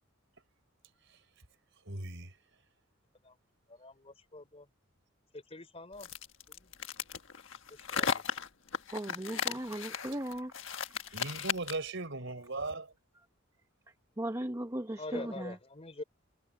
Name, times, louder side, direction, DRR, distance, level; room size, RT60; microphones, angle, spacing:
voice 1, 1.8-2.3 11.1-12.9, right 3 dB, 65° right, 4.7 m, -38 dB
voice 2, 3.7-4.7 5.3-6.1 6.5-6.7 7.7-8.2 15.0-16.0, left 2 dB, 30° left, 3.7 m, -45 dB
sound 1, 6.0-11.9, left 6 dB, 70° left, 1.5 m, -36 dB
voice 3, 8.9-10.5 14.2-15.5, right 1 dB, 15° right, 1.1 m, -37 dB
head